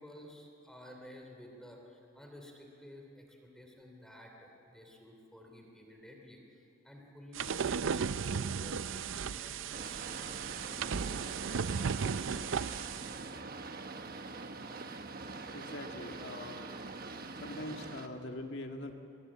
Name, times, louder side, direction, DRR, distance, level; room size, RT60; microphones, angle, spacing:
voice 1, 0.0-11.3, left 1 dB, 5° left, 1 dB, 3.0 m, -53 dB
sound 1, 7.3-13.3, right 6 dB, 70° right, 0.5 m, -35 dB
Boat Water vehicle, 9.7-18.1, right 3 dB, 50° right, 1.2 m, -44 dB
voice 2, 15.5-16.6 17.4-18.9, left 1 dB, 60° left, 4 dB, 1.8 m, -43 dB
23.5 x 22.0 x 8.7 m, 2.8 s
head